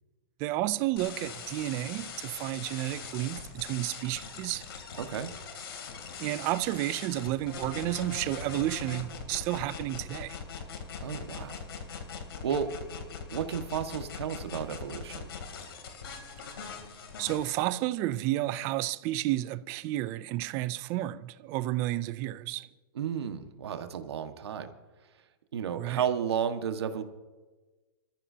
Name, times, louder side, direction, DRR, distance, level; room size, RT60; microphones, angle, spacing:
voice 1, 0.4-4.6 6.2-10.4 17.2-22.7 25.8-26.0, right 15 dB, 20° right, 0.4 m, -31 dB
sound 1, 1.0-17.5, left 6 dB, 70° left, 3.1 m, -41 dB
voice 2, 5.0-5.3 11.0-11.7 12.4-12.7 13.3-15.3 22.9-24.7 25.5-27.0, right 8 dB, 85° right, 1.6 m, -32 dB
27.5 x 14.0 x 2.8 m
supercardioid pair, 175°, 13 cm